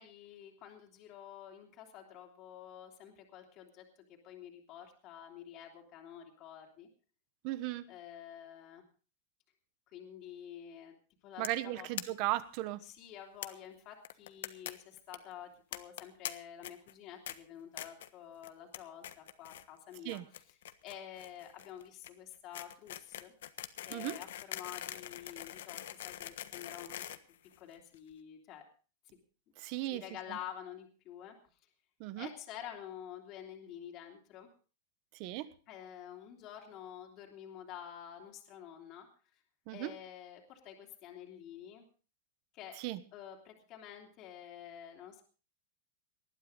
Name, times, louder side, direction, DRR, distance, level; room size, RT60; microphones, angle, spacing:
voice 1, 0.0-6.9 7.9-8.8 9.9-10.9 11.2-11.9 12.8-20.2 20.5-20.6 20.8-23.3 23.9-27.0 27.4-28.6 29.9-31.4 32.2-34.5 35.7-39.1 39.7-41.9 42.5-42.8 43.1-45.2, left 10 dB, 30° left, 1 dB, 3.1 m, -49 dB
voice 2, 7.4-7.9 11.4-12.8 20.0-20.3 23.9-24.2 29.6-30.0 30.3-30.4 32.0-32.3 35.2-35.5 39.7-39.9 42.8-43.0, right 16 dB, 40° right, 14 dB, 1.2 m, -36 dB
sound 1, 11.4-11.6 12.0-12.1 12.3-12.4 12.6-12.7 13.4-13.5 14.0-14.7 15.0-15.2 15.7-16.3 16.6-16.9 17.3-17.4 17.8-18.1 18.4-18.8 19.0-19.6 19.9-28.0, left 12 dB, 80° left, 1.3 m, -43 dB
20.0 x 13.0 x 3.9 m, 0.37 s
supercardioid pair, 165°, 0 cm